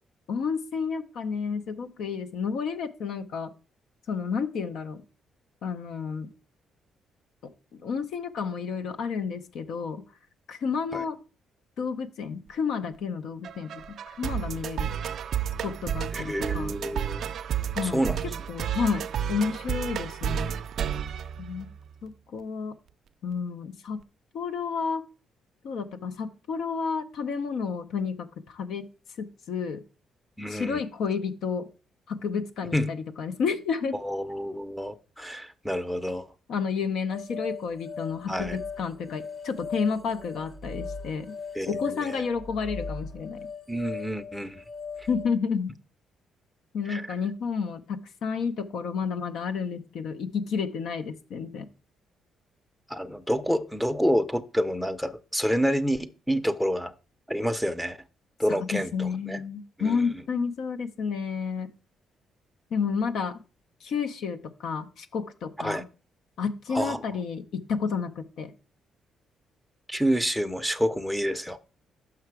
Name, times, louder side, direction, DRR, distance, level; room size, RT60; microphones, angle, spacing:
voice 1, 0.3-3.5 4.1-5.0 5.6-6.3 7.4-10.0 10.5-11.2 11.8-14.9 15.6-16.7 17.7-18.0 18.5-20.6 21.4-21.7 22.0-22.7 23.2-24.0 24.3-25.0 25.6-28.9 29.2-29.8 30.5-31.7 32.1-34.0 36.5-41.4 41.7-43.4 45.1-45.8 46.7-51.7 58.5-61.7 62.7-63.4 63.8-65.9 66.4-68.5, left 5 dB, 75° left, 0.5 m, -31 dB
sound 1, 13.4-22.0, right 9 dB, 65° right, 0.4 m, -32 dB
voice 2, 16.1-17.2 17.8-18.2 30.4-30.8 32.7-32.9 33.9-36.3 38.3-38.6 41.5-42.2 43.7-44.6 45.0-45.1 46.9-47.0 52.9-56.9 57.3-58.0 58.4-59.4 59.8-60.1 65.6-65.8 66.7-67.0 69.9-71.6, equal, ahead, 0.5 m, -28 dB
sound 2, 37.1-45.4, left 4 dB, 55° left, 1.4 m, -38 dB
5.8 x 5.7 x 4.6 m
cardioid pair, 90°, 0 cm